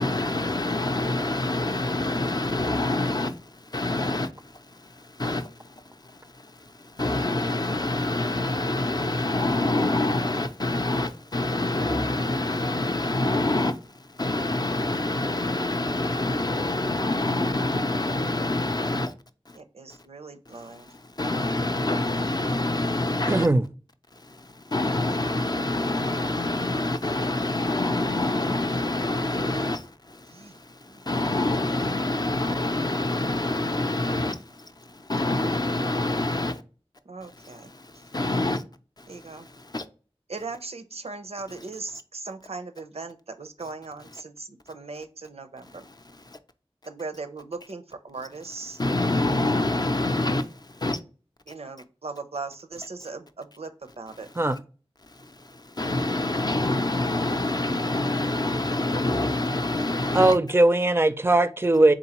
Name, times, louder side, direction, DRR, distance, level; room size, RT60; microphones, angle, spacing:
voice 1, 0.0-5.7 6.0-19.1 19.5-19.6 20.5-23.5 24.2-36.6 37.4-38.6 39.0-39.8 45.7-45.9 46.3-46.4 48.8-51.0 55.2-60.3, left 2 dB, 40° left, 0.5 m, -27 dB
voice 2, 19.6-20.9 30.3-30.5 30.9-31.0 37.0-37.7 39.1-39.5 40.3-45.8 46.9-48.8 51.5-53.7 54.0-54.3, right 3 dB, 85° right, 0.5 m, -38 dB
voice 3, 23.3-23.6 54.4-54.6 60.1-61.9, right 2 dB, 25° right, 0.4 m, -19 dB
3.7 x 3.7 x 2.9 m
wide cardioid pair, 45°, 10 cm